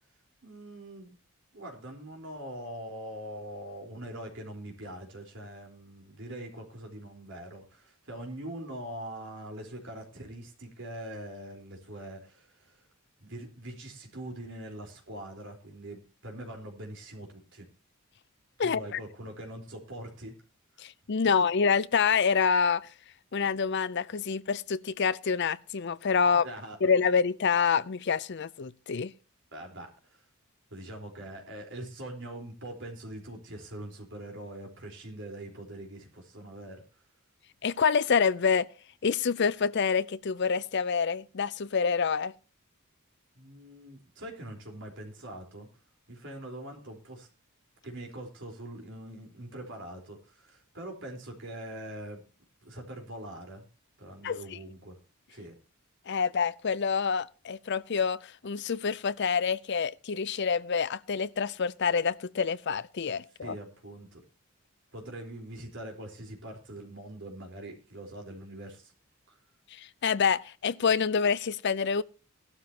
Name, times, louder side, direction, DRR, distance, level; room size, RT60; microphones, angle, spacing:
voice 1, 0.4-1.1 1.5-12.8 13.2-17.6 18.6-20.4 21.3-21.4 26.4-26.8 29.5-30.2 30.7-36.8 43.3-45.7 46.1-47.3 47.8-52.2 52.6-53.7 54.0-55.0 55.3-55.6 63.4-64.2 64.9-68.9, right 1 dB, 55° right, 4.1 m, -43 dB
voice 2, 18.6-19.0 20.8-22.9 23.3-26.4 26.8-29.1 37.6-38.7 39.0-42.3 54.2-54.4 56.1-63.6 69.7-72.0, left 6 dB, 50° left, 0.5 m, -27 dB
16.5 x 12.5 x 2.9 m
head